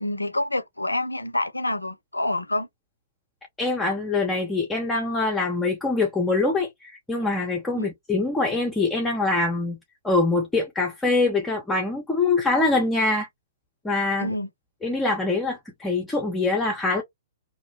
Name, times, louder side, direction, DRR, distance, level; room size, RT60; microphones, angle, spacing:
voice 1, 0.0-2.7 7.8-7.9 14.2-14.5, left 1 dB, 90° left, 0.4 m, -27 dB
voice 2, 3.6-9.8 10.0-13.3 13.8-14.3 14.8-17.0, left 3 dB, 10° left, 0.7 m, -24 dB
2.6 x 2.0 x 3.0 m
figure-of-eight pair, 115°, 0 cm